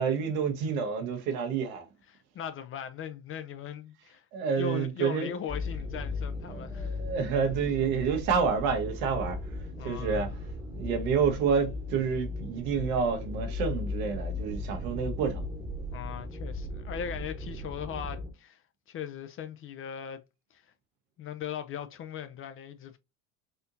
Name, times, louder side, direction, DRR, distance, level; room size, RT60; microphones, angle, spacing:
voice 1, 0.0-1.8 4.3-5.3 6.5-9.4 9.8-10.3 10.7-15.4, right 6 dB, 75° right, 1.3 m, -29 dB
voice 2, 2.1-4.2 4.6-7.0 9.8-10.3 15.9-18.6 18.9-20.2 20.5-20.6 21.2-23.0, left 8 dB, 30° left, 0.4 m, -39 dB
sound 1, 5.5-18.3, left 3 dB, 10° right, 1.0 m, -37 dB
4.2 x 2.7 x 2.6 m
supercardioid pair, 95°, 42 cm